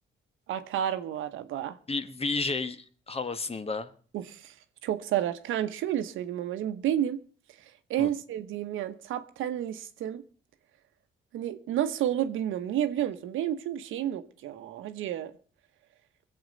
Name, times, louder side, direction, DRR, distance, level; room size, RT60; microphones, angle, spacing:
voice 1, 0.5-1.8 4.1-4.5 4.8-7.2 7.9-10.2 11.3-15.3, right 11 dB, 85° right, 1.1 m, -30 dB
voice 2, 1.9-3.9 8.0-8.1, left 3 dB, 30° left, 1.2 m, -32 dB
22.0 x 7.9 x 5.3 m
cardioid pair, 90°, 20 cm